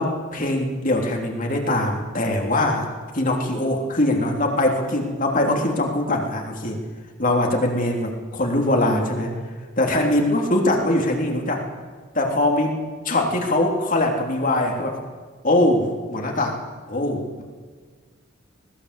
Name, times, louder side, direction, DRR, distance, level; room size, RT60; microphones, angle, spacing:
voice 1, 0.0-6.8 7.2-9.3 9.8-11.6 12.1-12.8 13.0-15.0 15.4-16.5 16.9-17.4, left 1 dB, 40° left, 2 dB, 3.3 m, -22 dB
19.5 x 19.0 x 8.2 m, 1.5 s
head